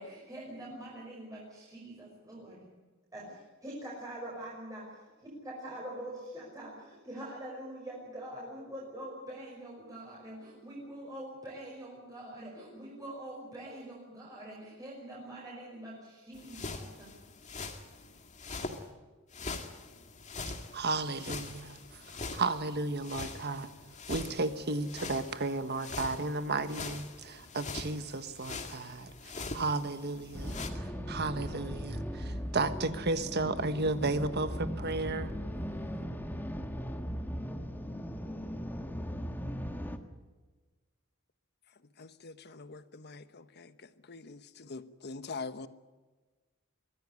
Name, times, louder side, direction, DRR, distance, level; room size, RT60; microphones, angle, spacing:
voice 1, 0.0-2.7 3.1-17.1, right 1 dB, 15° right, -5 dB, 5.6 m, -44 dB
sound 1, 16.3-18.8 19.3-30.7, left 3 dB, 35° left, 2.1 m, -43 dB
voice 2, 20.7-21.8 22.1-23.7 24.1-29.1 29.5-35.3, right 3 dB, 50° right, 10 dB, 1.4 m, -33 dB
sound 2, 30.3-40.0, equal, 10° left, 1.5 m, -38 dB
voice 3, 42.0-43.7 44.1-45.7, left 4 dB, 50° left, 12 dB, 1.1 m, -44 dB
23.5 x 16.0 x 9.7 m, 1.3 s
head